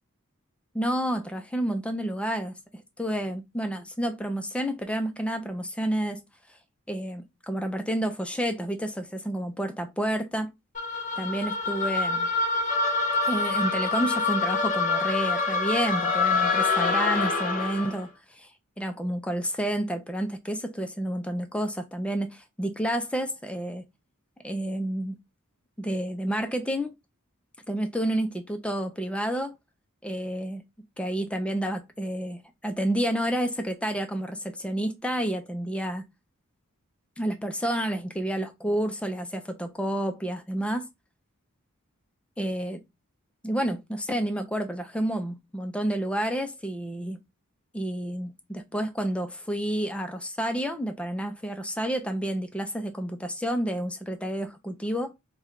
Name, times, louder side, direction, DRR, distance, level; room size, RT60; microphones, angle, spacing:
voice 1, 0.7-2.5 3.0-6.2 6.9-10.5 11.2-12.3 13.3-18.5 18.8-23.8 24.4-25.2 25.8-26.9 27.7-29.6 30.0-30.6 31.0-36.0 37.2-40.9 42.4-42.8 43.4-47.2 47.7-55.1, right 1 dB, 5° left, 0.4 m, -30 dB
sound 1, 10.7-18.0, left 3 dB, 35° left, 0.9 m, -26 dB
4.3 x 2.2 x 3.6 m
head